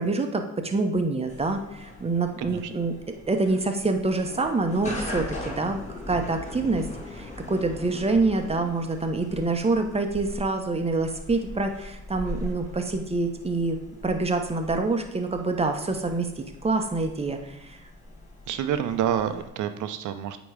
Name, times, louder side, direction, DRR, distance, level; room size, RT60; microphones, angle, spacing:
voice 1, 0.0-2.9 3.3-5.8 6.1-6.9 7.1-13.8 14.0-17.8, right 3 dB, 20° right, 5 dB, 0.8 m, -26 dB
sound 1, 1.2-19.5, left 1 dB, 25° left, 2.0 m, -40 dB
voice 2, 2.4-2.7 18.5-20.4, right 9 dB, 80° right, 9 dB, 0.7 m, -28 dB
8.6 x 3.1 x 4.8 m, 0.83 s
cardioid pair, 90°, 30 cm